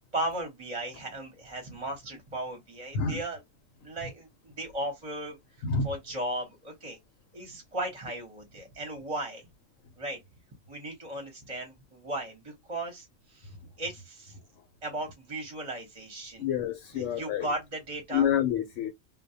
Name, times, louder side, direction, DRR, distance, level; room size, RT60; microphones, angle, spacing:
voice 1, 0.1-3.4 3.8-5.4 5.8-7.0 7.3-9.4 10.0-10.2 10.7-14.3 14.8-16.5 16.9-18.3, right 1 dB, 35° right, 0.7 m, -36 dB
voice 2, 16.4-17.5 18.1-18.9, left 7 dB, 75° left, 0.9 m, -28 dB
2.2 x 2.1 x 2.6 m
omnidirectional pair, 1.3 m